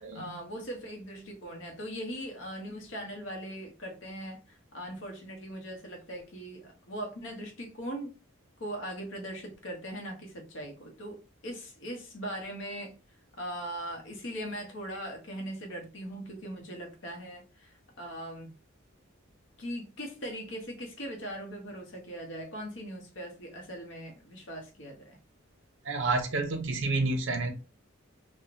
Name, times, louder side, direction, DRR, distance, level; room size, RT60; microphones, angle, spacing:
voice 1, 0.1-8.2 8.6-13.0 13.4-18.5 19.6-25.2, equal, 65° left, 0.7 m, -40 dB
voice 2, 25.9-27.5, right 3 dB, 65° right, 0.6 m, -29 dB
3.0 x 2.1 x 2.5 m
head